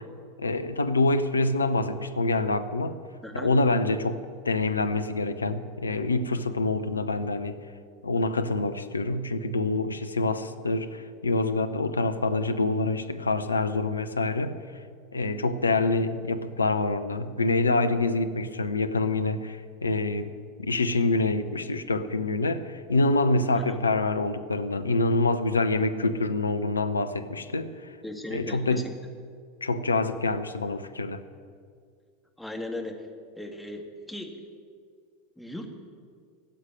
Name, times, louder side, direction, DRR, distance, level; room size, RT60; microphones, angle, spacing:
voice 1, 0.4-3.0 3.3-7.6 8.0-14.6 15.1-20.3 20.6-27.9 28.3-28.9 29.6-31.2, left 2 dB, 80° left, 11 dB, 0.7 m, -26 dB
voice 2, 28.0-28.9 32.4-33.1 33.4-34.4 35.4-35.7, left 1 dB, ahead, 2 dB, 1.9 m, -37 dB
14.5 x 8.2 x 9.8 m, 2.1 s
figure-of-eight pair, 85°, 0 cm